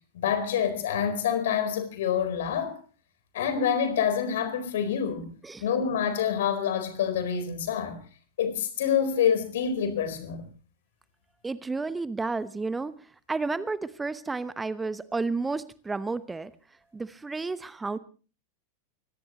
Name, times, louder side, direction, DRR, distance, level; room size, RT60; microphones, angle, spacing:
voice 1, 0.1-2.8 3.3-5.3 5.6-8.0 8.4-10.4, left 8 dB, 60° left, 4.3 m, -27 dB
voice 2, 11.4-12.9 13.3-16.5 16.9-18.0, right 3 dB, 10° right, 0.9 m, -31 dB
24.5 x 18.5 x 3.0 m
figure-of-eight pair, 90°, 0 cm